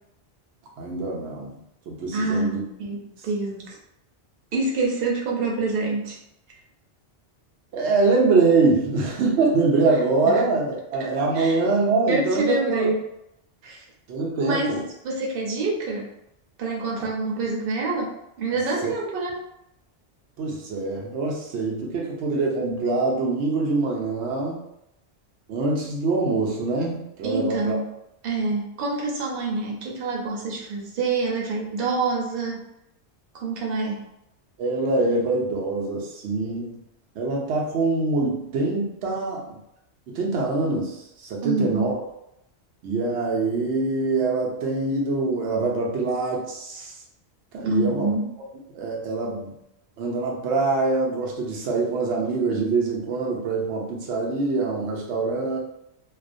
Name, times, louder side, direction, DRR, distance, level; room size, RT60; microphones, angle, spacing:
voice 1, 0.8-1.6 1.9-2.6 7.7-12.9 14.1-14.8 17.0-17.1 18.8-18.9 20.4-24.6 25.5-27.8 34.6-36.8 37.2-39.6 40.1-42.0 42.8-46.9 47.5-48.2 48.7-49.6 50.0-55.6, right 3 dB, 90° right, -2 dB, 0.9 m, -24 dB
voice 2, 2.1-3.8 4.5-6.2 10.3-10.4 11.3-11.6 12.1-13.0 13.6-13.8 14.4-16.1 16.6-18.1 18.4-19.4 27.2-27.9 28.2-32.7 33.3-34.0 41.4-41.9 47.6-48.3, right 3 dB, 60° right, -1 dB, 0.8 m, -26 dB
2.4 x 2.1 x 2.5 m, 0.81 s
omnidirectional pair, 1.1 m